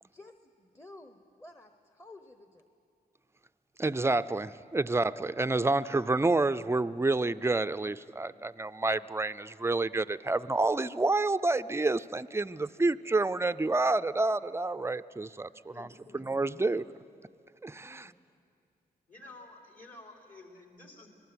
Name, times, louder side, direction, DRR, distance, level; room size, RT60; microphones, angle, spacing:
voice 1, 0.0-2.6 17.8-18.4, left 2 dB, 15° left, 7 dB, 1.1 m, -53 dB
voice 2, 3.8-15.5 15.8-15.9 16.1-16.8 17.6-18.1, right 2 dB, 15° right, 13 dB, 0.5 m, -29 dB
voice 3, 15.7-16.2 19.1-21.1, left 2 dB, 55° left, 1 dB, 4.1 m, -51 dB
25.5 x 18.5 x 7.9 m, 2.5 s
cardioid pair, 55°, 17 cm